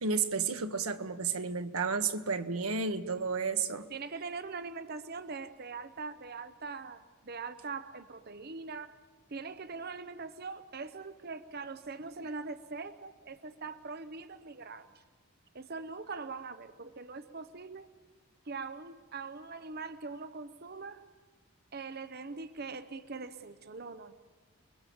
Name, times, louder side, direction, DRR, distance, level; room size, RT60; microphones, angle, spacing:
voice 1, 0.0-3.9, right 5 dB, 90° right, 8 dB, 1.4 m, -32 dB
voice 2, 3.9-9.0 9.3-15.0 15.5-17.9 18.4-21.0 21.7-24.1, right 4 dB, 45° right, 11 dB, 0.8 m, -42 dB
29.0 x 21.5 x 7.2 m, 1.4 s
head